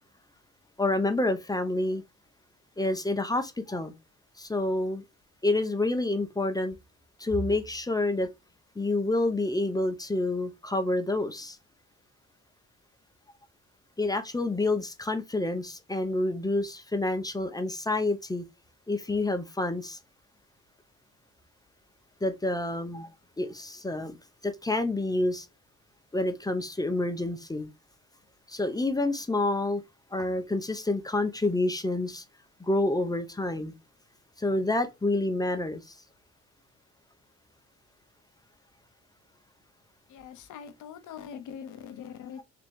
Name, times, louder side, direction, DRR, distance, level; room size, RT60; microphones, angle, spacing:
voice 1, 0.8-2.0 2.8-3.9 4.4-5.0 5.4-6.8 7.2-8.3 8.8-11.6 14.0-18.4 18.9-20.0 22.2-23.1 23.4-24.2 24.4-25.5 26.1-27.7 28.5-29.8 30.1-32.2 32.6-33.7 34.4-35.8, left 2 dB, 10° left, 0.7 m, -28 dB
voice 2, 40.1-42.4, left 8 dB, 80° left, 0.8 m, -42 dB
3.6 x 2.9 x 3.5 m
cardioid pair, 90°, 30 cm